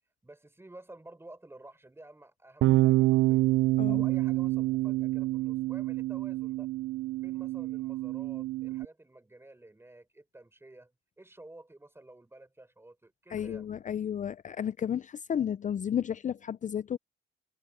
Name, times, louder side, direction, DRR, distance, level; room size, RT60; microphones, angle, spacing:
voice 1, 0.2-3.5 3.9-6.7 7.2-13.7, right 2 dB, 10° right, 4.0 m, -52 dB
Bass guitar, 2.6-8.9, right 17 dB, 75° right, 0.4 m, -27 dB
voice 2, 13.3-17.0, left 9 dB, 40° left, 0.5 m, -32 dB
cardioid pair, 90°, 20 cm